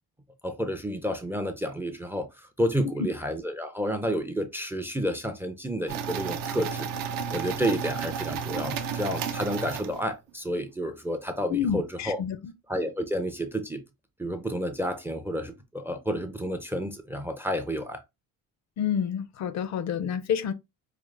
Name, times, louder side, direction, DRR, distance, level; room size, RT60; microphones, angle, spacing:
voice 1, 0.4-12.2 12.7-13.8 14.2-18.0, equal, 5° right, 0.4 m, -30 dB
sound 1, 5.9-10.3, right 6 dB, 70° right, 0.7 m, -32 dB
voice 2, 11.5-12.5 18.8-20.5, left 8 dB, 50° left, 0.4 m, -28 dB
4.8 x 2.0 x 3.2 m
cardioid pair, 145°, 35 cm